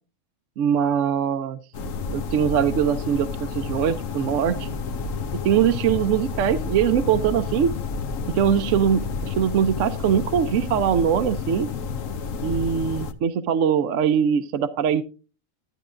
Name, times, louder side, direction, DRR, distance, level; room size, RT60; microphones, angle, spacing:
voice 1, 0.6-1.6 2.1-4.7 5.4-7.7 8.3-11.7 12.4-15.0, right 8 dB, 70° right, 10 dB, 1.0 m, -22 dB
sound 1, 1.7-13.1, left 5 dB, 70° left, 1.2 m, -30 dB
11.5 x 9.9 x 2.4 m, 0.33 s
omnidirectional pair, 1.4 m